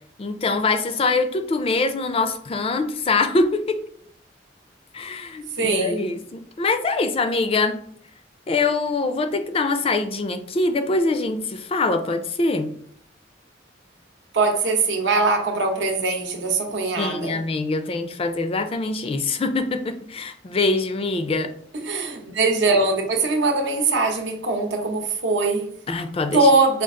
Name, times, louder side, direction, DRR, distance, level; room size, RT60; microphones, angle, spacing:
voice 1, 0.2-3.8 4.9-7.8 8.5-12.7 17.0-21.5 25.9-26.5, left 3 dB, 30° left, 0.4 m, -24 dB
voice 2, 5.6-6.1 14.3-17.4 21.7-25.7 26.3-26.8, right 3 dB, 75° right, 0.8 m, -21 dB
5.0 x 2.4 x 3.6 m
head